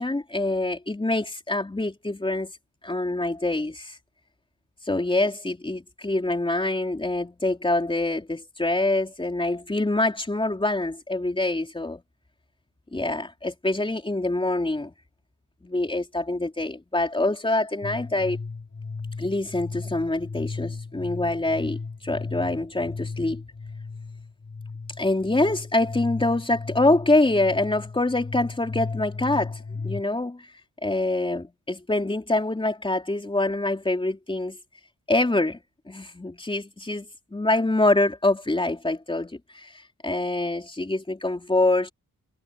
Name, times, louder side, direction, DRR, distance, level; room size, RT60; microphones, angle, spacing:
voice 1, 0.0-2.5 2.8-4.0 4.9-12.0 12.9-14.9 15.6-18.4 19.2-21.8 22.0-23.4 25.0-30.5 30.8-34.6 35.1-35.6 35.9-39.7 40.0-41.9, left 2 dB, 15° left, 3.9 m, -25 dB
sound 1, 17.8-30.0, left 4 dB, 35° left, 5.5 m, -35 dB
wide cardioid pair, 125°, 34 cm